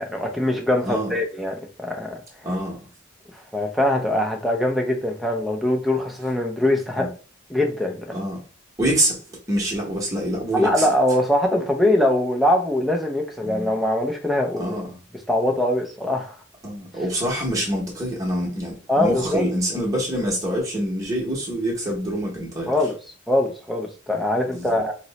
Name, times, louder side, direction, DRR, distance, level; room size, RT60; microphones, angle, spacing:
voice 1, 0.0-2.2 3.5-7.1 7.5-8.2 10.5-14.8 15.3-16.4 18.9-19.4 22.7-23.0 23.3-24.9, left 1 dB, ahead, 0.4 m, -22 dB
voice 2, 2.4-2.8 7.0-7.1 8.1-8.4 8.8-9.2 9.5-10.9 13.4-13.7 14.6-15.0 16.6-22.7 24.5-24.7, right 1 dB, 15° right, 0.8 m, -25 dB
2.9 x 2.0 x 4.0 m
head